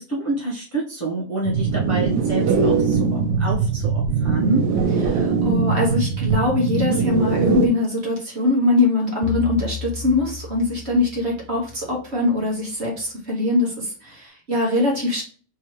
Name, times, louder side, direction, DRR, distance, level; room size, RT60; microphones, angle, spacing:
voice 1, 0.0-4.6, right 2 dB, 10° left, -5 dB, 0.8 m, -27 dB
sound 1, 1.5-7.7, right 5 dB, 90° right, 1.2 m, -21 dB
voice 2, 5.1-15.2, left 2 dB, 45° right, -2 dB, 1.4 m, -22 dB
sound 2, 9.2-12.0, left 8 dB, 70° left, 1.1 m, -33 dB
3.5 x 3.1 x 3.1 m, 0.42 s
omnidirectional pair, 1.7 m